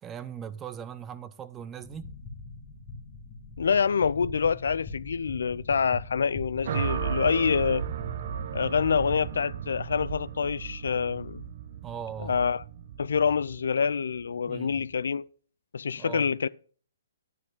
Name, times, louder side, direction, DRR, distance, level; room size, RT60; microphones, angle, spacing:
voice 1, 0.0-2.2 11.8-12.4 14.5-14.9 16.0-16.3, right 8 dB, 20° right, 0.7 m, -39 dB
sound 1, 1.8-9.4, left 3 dB, 15° left, 2.1 m, -43 dB
voice 2, 3.6-7.9 8.5-11.4 12.2-12.6 13.0-15.2 15.7-16.5, left 6 dB, 75° left, 0.4 m, -26 dB
sound 2, 6.6-14.9, right 9 dB, 55° right, 0.8 m, -35 dB
11.0 x 9.6 x 3.8 m
hypercardioid pair, 140°, 0 cm